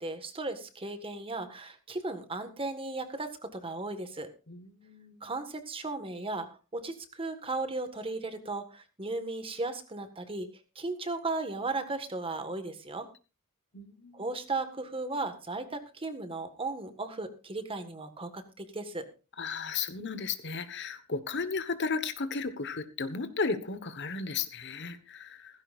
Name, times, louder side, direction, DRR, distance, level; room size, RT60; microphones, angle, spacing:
voice 1, 0.0-4.3 5.2-6.5 6.7-10.5 10.7-13.1 14.1-19.0, right 3 dB, 25° right, 9 dB, 1.6 m, -36 dB
voice 2, 4.5-5.3 13.7-14.3 19.4-25.6, left 4 dB, 55° left, 11 dB, 1.3 m, -34 dB
17.0 x 15.5 x 2.5 m, 0.32 s
head